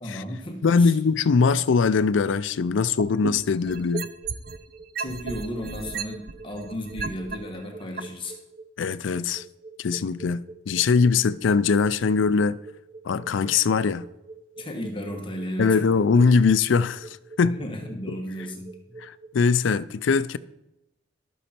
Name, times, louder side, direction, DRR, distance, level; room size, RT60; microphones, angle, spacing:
voice 1, 0.0-1.0 5.0-8.4 14.6-15.9 17.6-19.0, equal, 25° left, 1.4 m, -34 dB
voice 2, 0.6-4.1 8.8-9.4 9.8-12.6 13.0-14.0 15.6-17.6 19.0-20.4, left 5 dB, 75° left, 0.4 m, -22 dB
sound 1, 3.0-4.6 5.0-7.4 8.0-8.1, right 5 dB, 55° right, 0.6 m, -32 dB
sound 2, 3.7-19.3, right 4 dB, 30° right, 1.0 m, -45 dB
12.5 x 8.1 x 4.4 m
head